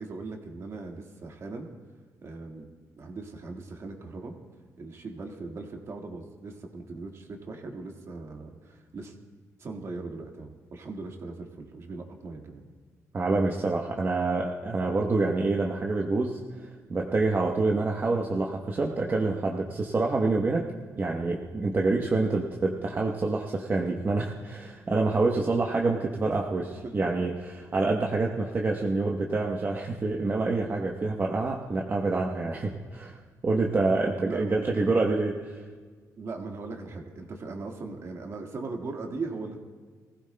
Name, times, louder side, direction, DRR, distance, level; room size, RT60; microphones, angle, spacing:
voice 1, 0.0-1.7 2.2-2.7 3.0-4.4 4.8-9.1 9.6-12.6 26.2-26.9 34.2-34.5 36.2-39.6, right 3 dB, 50° right, 3 dB, 1.7 m, -39 dB
voice 2, 13.1-20.7 21.0-26.7 26.9-33.2 33.4-35.6, right 3 dB, 35° right, -1 dB, 1.0 m, -27 dB
23.0 x 16.0 x 2.2 m, 1.5 s
cardioid pair, 100°, 6 cm